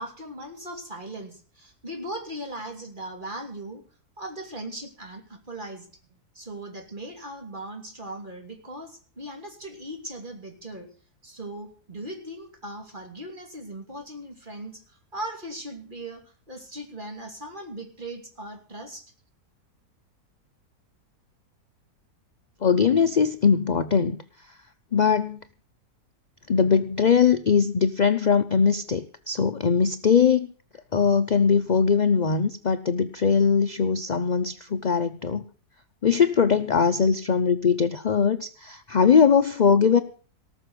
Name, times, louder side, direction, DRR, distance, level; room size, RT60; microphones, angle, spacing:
voice 1, 0.0-3.8 4.2-5.9 6.3-10.9 11.2-19.1, right 1 dB, 30° right, 3 dB, 3.1 m, -38 dB
voice 2, 22.6-24.2 24.9-25.4 26.5-30.5 30.9-35.4 36.0-40.0, left 6 dB, 50° left, 10 dB, 0.5 m, -21 dB
18.5 x 6.5 x 7.8 m, 0.42 s
omnidirectional pair, 1.7 m